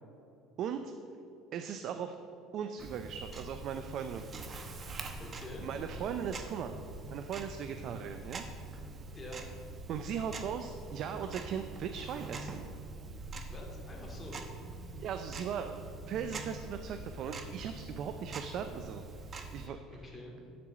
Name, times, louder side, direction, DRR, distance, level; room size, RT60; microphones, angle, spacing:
voice 1, 0.6-0.9 1.5-2.2 2.5-4.6 5.6-6.8 7.1-8.4 9.9-12.6 14.9-15.8 16.1-19.0 19.5-19.8, right 7 dB, 55° right, 7 dB, 0.5 m, -38 dB
Tick-tock, 2.8-19.7, right 3 dB, 35° right, 0.9 m, -44 dB
voice 2, 5.2-5.6 9.1-9.4 13.5-14.4 19.9-20.4, left 1 dB, 20° left, -1 dB, 2.3 m, -47 dB
10.0 x 4.5 x 7.4 m, 2.7 s
supercardioid pair, 100°, 0 cm